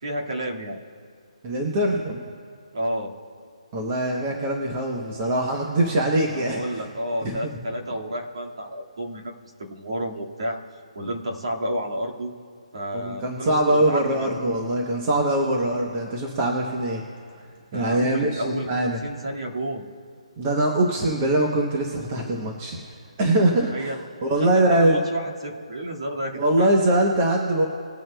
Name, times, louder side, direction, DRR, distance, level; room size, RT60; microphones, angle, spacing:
voice 1, 0.0-0.8 2.7-3.1 6.3-9.3 9.6-10.6 11.0-12.3 12.7-14.3 17.7-19.8 23.7-24.0 24.3-26.7, equal, 50° right, -1 dB, 1.9 m, -31 dB
voice 2, 1.4-2.2 3.7-6.8 7.2-7.6 12.9-17.0 17.3-17.4 17.7-19.0 20.4-25.0 26.3-27.6, right 1 dB, 15° right, 0 dB, 0.8 m, -23 dB
20.5 x 9.2 x 2.2 m, 2.2 s
hypercardioid pair, 180°, 4 cm